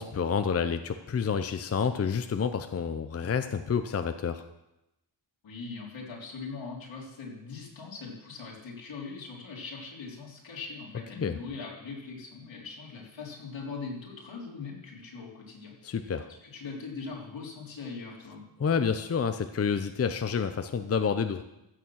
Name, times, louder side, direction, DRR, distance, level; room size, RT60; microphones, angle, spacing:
voice 1, 0.0-4.4 11.1-11.4 15.8-16.3 18.6-21.4, left 6 dB, 30° left, 9 dB, 0.6 m, -29 dB
voice 2, 5.4-15.9 16.4-18.4, left 4 dB, 70° left, -3 dB, 3.7 m, -41 dB
15.0 x 6.9 x 6.3 m, 0.91 s
wide cardioid pair, 100°, 47 cm